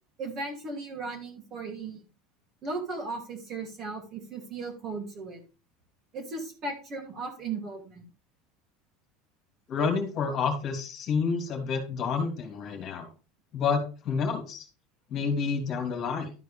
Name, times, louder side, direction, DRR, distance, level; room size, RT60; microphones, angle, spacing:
voice 1, 0.2-2.0 2.6-5.4 6.1-8.0, right 3 dB, 30° right, 0 dB, 2.7 m, -36 dB
voice 2, 9.7-13.1 13.5-14.7 15.1-16.3, left 5 dB, 35° left, 4 dB, 2.6 m, -29 dB
12.0 x 4.6 x 5.0 m, 0.33 s
cardioid pair, 170°, 0 cm